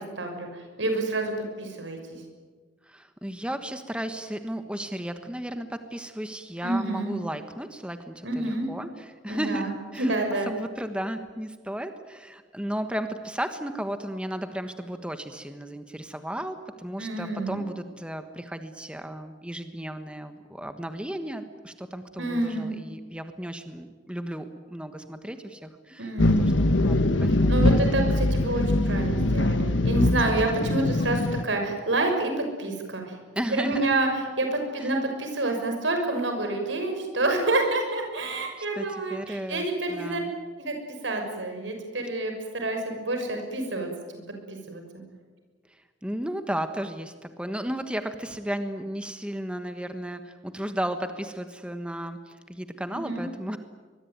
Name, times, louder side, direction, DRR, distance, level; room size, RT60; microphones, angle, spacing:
voice 1, 0.2-1.3 1.6-2.2 6.6-7.1 8.2-8.7 9.3-9.7 10.0-10.5 17.0-17.6 22.2-22.7 26.0-26.4 27.5-33.2 33.5-34.1 34.4-40.2 40.6-40.8 41.0-44.8 52.9-53.3, right 2 dB, 80° right, 4 dB, 6.4 m, -28 dB
voice 2, 2.8-10.2 10.5-26.1 26.4-27.5 33.3-33.9 34.8-34.9 38.3-38.4 38.8-40.3 45.7-53.6, right 1 dB, 5° right, 8 dB, 1.3 m, -34 dB
sound 1, 26.2-31.4, left 1 dB, 85° left, 1.4 m, -22 dB
24.5 x 22.0 x 9.5 m, 1.4 s
head